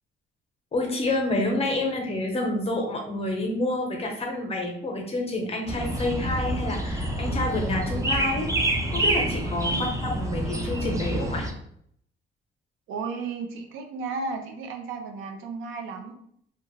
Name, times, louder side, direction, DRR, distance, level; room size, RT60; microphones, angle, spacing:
voice 1, 0.7-8.5 8.9-11.5, left 1 dB, 30° left, 1 dB, 0.7 m, -28 dB
sound 1, 5.7-11.5, right 1 dB, 15° right, 0.5 m, -27 dB
voice 2, 12.9-16.1, right 4 dB, 85° right, 4 dB, 0.5 m, -34 dB
2.3 x 2.2 x 3.1 m, 0.68 s
cardioid pair, 90°, 20 cm